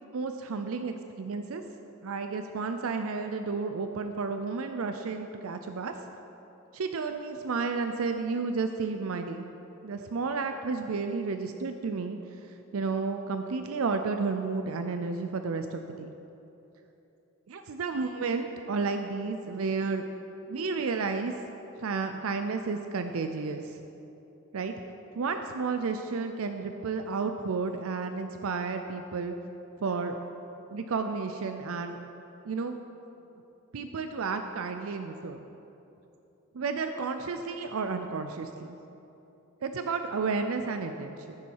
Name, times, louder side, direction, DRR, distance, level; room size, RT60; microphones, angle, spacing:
voice 1, 0.1-1.6 2.0-5.9 6.9-9.5 9.8-12.2 12.4-16.1 17.5-20.0 20.5-21.3 21.8-23.8 24.5-24.7 25.1-29.4 29.8-30.2 30.7-32.0 32.4-32.8 33.7-35.4 36.5-38.8 39.6-41.2, right 4 dB, 85° right, 7 dB, 0.5 m, -32 dB
14.5 x 7.0 x 4.7 m, 3.0 s
head